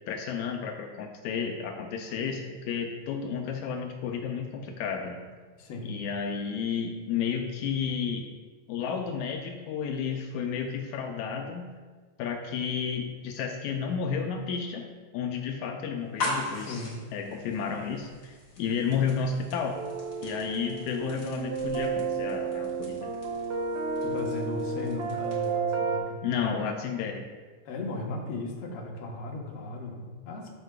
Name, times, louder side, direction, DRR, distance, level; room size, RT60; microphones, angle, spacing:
voice 1, 0.1-5.2 5.8-8.3 8.7-11.7 12.2-14.9 15.1-16.8 17.1-19.8 20.2-23.1 26.2-27.3, left 6 dB, 85° left, 3 dB, 2.0 m, -32 dB
voice 2, 5.6-5.9 16.5-17.0 24.0-26.2 27.7-30.5, left 2 dB, 65° left, -1 dB, 1.8 m, -36 dB
sound 1, 16.0-25.7, left 2 dB, 40° left, 1.8 m, -41 dB
sound 2, 19.7-26.0, right 4 dB, 70° right, 1.4 m, -31 dB
14.0 x 5.0 x 2.2 m, 1.4 s
omnidirectional pair, 3.4 m